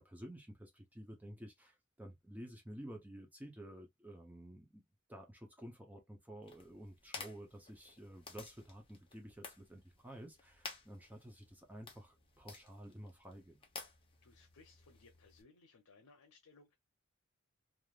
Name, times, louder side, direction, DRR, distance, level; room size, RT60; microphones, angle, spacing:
voice 1, 0.0-4.8 5.1-13.6, right 1 dB, 10° right, 0.6 m, -52 dB
sound 1, 6.4-15.4, left 4 dB, 25° left, 0.8 m, -54 dB
voice 2, 14.2-16.7, left 4 dB, 90° left, 0.7 m, -63 dB
3.2 x 2.5 x 2.3 m
head